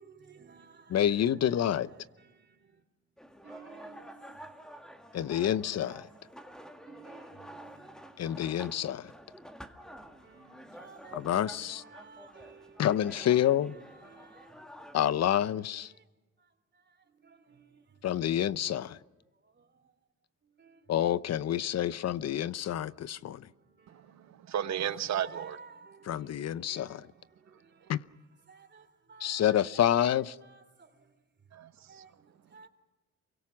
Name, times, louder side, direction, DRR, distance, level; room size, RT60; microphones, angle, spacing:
voice 1, 0.0-1.0 2.2-2.8 3.4-4.9 6.4-6.5 6.8-8.2 9.8-12.9 13.2-13.5 13.8-14.8 15.9-16.0 16.4-18.0 19.4-19.9 20.6-20.9 23.4-24.5 25.2-27.9 28.5-29.5 30.4-31.1 31.9-32.7, right 5 dB, 35° right, 3.6 m, -55 dB
voice 2, 0.9-1.9 5.1-6.1 8.2-9.1 11.1-11.8 12.8-13.8 14.9-15.9 18.0-19.0 20.9-23.5 26.0-27.1 27.9-28.0 29.2-30.4, left 10 dB, 60° left, 0.8 m, -28 dB
sound 1, 3.2-15.0, equal, ahead, 2.0 m, -50 dB
voice 3, 23.9-25.6 27.5-27.9 31.5-32.7, right 9 dB, 65° right, 1.4 m, -36 dB
28.5 x 23.5 x 6.0 m
cardioid pair, 90°, 30 cm